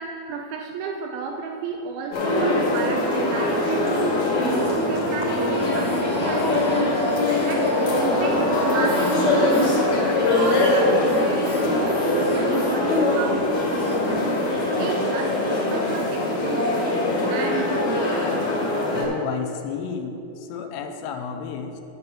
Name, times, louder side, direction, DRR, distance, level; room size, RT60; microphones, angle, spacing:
voice 1, 0.0-9.9 10.3-11.0 11.5-14.2 14.7-18.2, right 5 dB, 80° right, 3 dB, 2.2 m, -32 dB
sound 1, 2.1-19.0, left 2 dB, 40° left, 2.5 m, -22 dB
sound 2, 4.5-14.1, left 1 dB, 15° left, 1.5 m, -39 dB
voice 2, 18.9-21.8, left 6 dB, 90° left, 5 dB, 3.0 m, -32 dB
10.5 x 5.4 x 7.1 m, 2.7 s
omnidirectional pair, 4.8 m